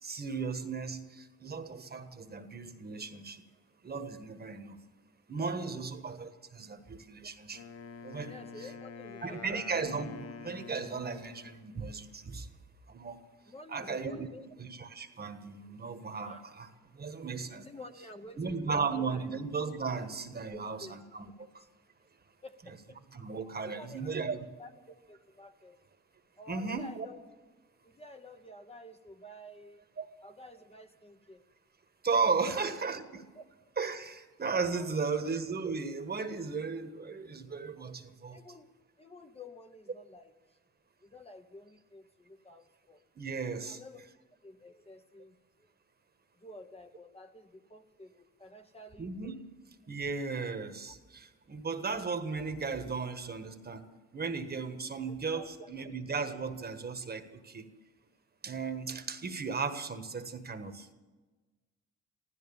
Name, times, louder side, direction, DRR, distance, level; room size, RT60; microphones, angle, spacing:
voice 1, 0.0-3.4 3.8-4.8 5.3-7.6 8.0-8.3 9.2-12.5 12.9-13.2 13.7-14.3 14.6-17.7 18.4-21.5 23.1-24.4 26.5-27.1 30.0-30.1 32.0-33.3 33.8-38.4 43.1-43.8 49.0-49.4 49.9-57.7 58.4-60.9, right 5 dB, 30° right, 8 dB, 1.4 m, -36 dB
Wind instrument woodwind instrument, 7.5-11.7, left 6 dB, 55° left, 1.0 m, -47 dB
voice 2, 8.2-9.8 13.5-14.5 16.2-16.4 17.6-19.3 20.5-20.9 21.6-21.7 22.4-23.0 23.6-24.3 24.6-25.8 26.4-27.2 27.8-29.8 30.2-31.4 32.5-32.6 33.3-33.7 34.7-35.0 37.8-37.9 38.3-38.7 39.0-40.3 41.0-43.0 43.6-44.0 44.4-45.7 46.4-49.1 55.3-55.8, left 1 dB, 20° left, 6 dB, 1.0 m, -51 dB
15.5 x 13.0 x 7.0 m, 1.3 s
cardioid pair, 90°, 30 cm